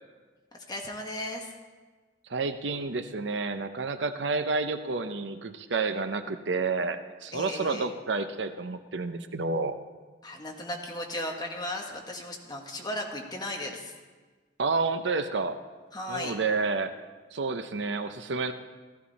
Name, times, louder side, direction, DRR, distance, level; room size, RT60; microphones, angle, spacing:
voice 1, 0.5-1.5 7.3-7.9 10.2-13.9 15.9-16.3, left 1 dB, 25° left, 0 dB, 1.6 m, -36 dB
voice 2, 2.3-9.8 14.6-15.6 16.1-16.9 17.3-18.5, right 4 dB, 70° right, 9 dB, 0.7 m, -30 dB
15.5 x 14.0 x 4.2 m, 1.4 s
head